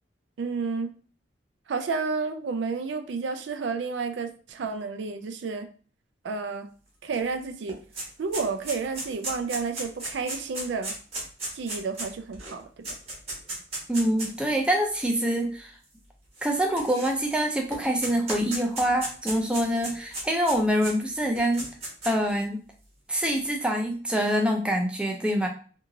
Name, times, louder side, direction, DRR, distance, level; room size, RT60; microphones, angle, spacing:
voice 1, 0.4-0.9 1.7-5.7 6.2-6.7 7.0-7.8 8.2-10.9 11.5-12.9, right 4 dB, 80° right, 7 dB, 0.4 m, -31 dB
sound 1, 7.1-7.2 7.5-14.4 15.2-15.3 16.4-17.4 17.7-20.9 21.4-22.3, right 1 dB, 35° right, 1.0 m, -35 dB
voice 2, 13.9-15.7 16.4-21.7 22.0-22.6 23.1-25.5, equal, 5° right, 1 dB, 0.4 m, -25 dB
2.9 x 2.7 x 2.5 m, 0.39 s
head